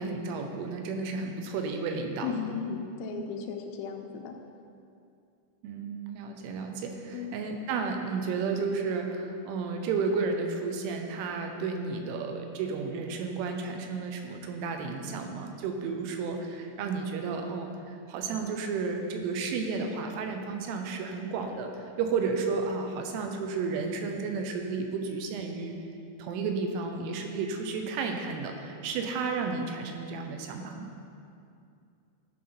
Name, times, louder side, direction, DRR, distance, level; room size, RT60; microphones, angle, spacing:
voice 1, 0.0-2.3 5.6-25.8 26.2-30.9, right 4 dB, 85° right, 4 dB, 3.2 m, -32 dB
voice 2, 2.2-4.4 7.1-7.4, left 6 dB, 80° left, 3 dB, 3.0 m, -35 dB
14.0 x 5.6 x 4.3 m, 2.5 s
omnidirectional pair, 5.6 m